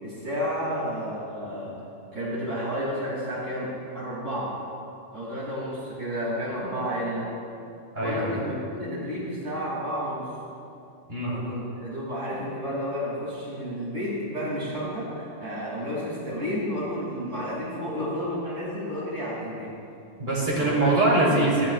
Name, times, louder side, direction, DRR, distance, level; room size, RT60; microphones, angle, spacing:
voice 1, 0.0-1.7 2.1-3.7 3.9-4.5 5.1-7.3 8.0-10.3 11.2-19.7 20.6-20.9, equal, 65° right, -7 dB, 3.5 m, -31 dB
voice 2, 7.9-8.4 11.1-11.3 20.2-21.7, right 2 dB, 40° right, -7 dB, 4.0 m, -23 dB
18.5 x 16.5 x 2.5 m, 2.6 s
omnidirectional pair, 1.3 m